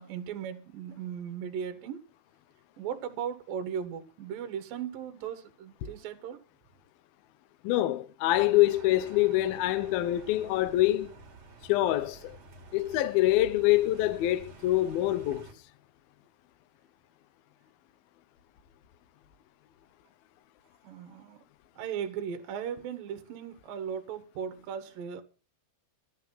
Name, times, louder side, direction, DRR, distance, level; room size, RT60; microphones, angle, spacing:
voice 1, 0.0-2.1 2.8-6.4 20.8-21.4 21.8-25.2, right 8 dB, 65° right, 2.4 m, -37 dB
voice 2, 7.6-11.1 11.6-12.4 12.7-15.5, left 15 dB, 80° left, 2.1 m, -25 dB
sound 1, 8.3-15.5, right 4 dB, 45° right, 2.4 m, -50 dB
13.5 x 9.9 x 5.7 m
omnidirectional pair, 5.6 m